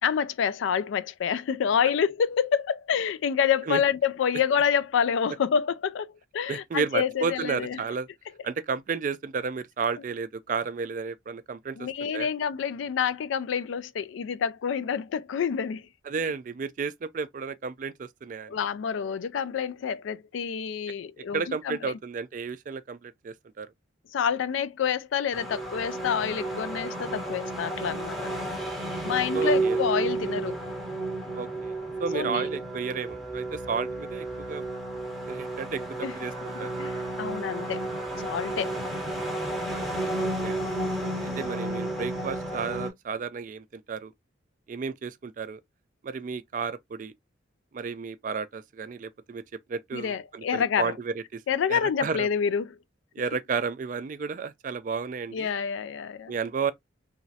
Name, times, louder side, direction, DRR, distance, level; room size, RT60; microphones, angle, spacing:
voice 1, 0.0-6.1 6.3-7.8 11.8-15.9 18.5-22.0 24.1-28.3 29.0-30.6 32.1-32.5 36.0-36.1 36.8-37.8 38.2-38.7 40.7-41.5 49.9-50.9 51.5-52.8 55.3-56.3, left 7 dB, 80° left, 0.3 m, -28 dB
voice 2, 6.5-8.1 8.4-11.9 12.1-12.3 16.1-18.6 21.3-23.7 29.3-29.8 30.2-30.3 31.3-34.6 35.3-36.7 39.7-40.6 41.2-44.1 44.7-45.6 46.0-47.1 47.7-49.4 49.7-51.4 51.7-52.3 53.2-55.5 56.3-56.7, right 5 dB, 40° right, 0.3 m, -32 dB
sound 1, 25.3-42.9, right 2 dB, ahead, 0.7 m, -32 dB
3.0 x 2.4 x 2.6 m
head